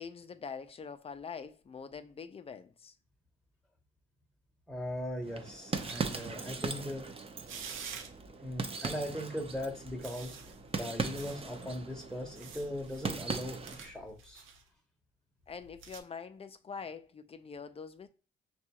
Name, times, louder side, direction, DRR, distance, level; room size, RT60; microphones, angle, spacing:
voice 1, 0.0-2.9 15.5-18.1, left 6 dB, 30° left, 0.4 m, -44 dB
voice 2, 4.7-7.1 8.4-10.4 10.7-14.4, equal, 5° left, 0.8 m, -39 dB
sound 1, 5.2-13.9, right 4 dB, 30° right, 0.6 m, -39 dB
sound 2, 5.8-6.5 7.2-8.4 9.3-14.6 15.5-16.0, right 5 dB, 85° right, 0.7 m, -50 dB
6.0 x 2.3 x 2.8 m
cardioid pair, 90°, 20 cm